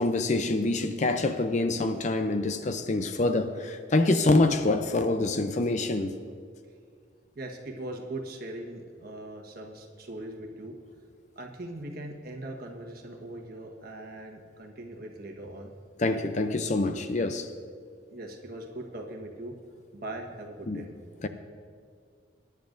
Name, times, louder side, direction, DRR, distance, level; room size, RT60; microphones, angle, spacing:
voice 1, 0.0-6.2 16.0-17.5 20.7-20.8 21.2-21.3, left 2 dB, 35° left, 8 dB, 0.5 m, -26 dB
voice 2, 7.3-10.8 11.3-15.7 18.1-19.5 19.9-20.9, right 1 dB, 50° right, 2 dB, 1.4 m, -40 dB
20.5 x 10.5 x 2.6 m, 2.2 s
head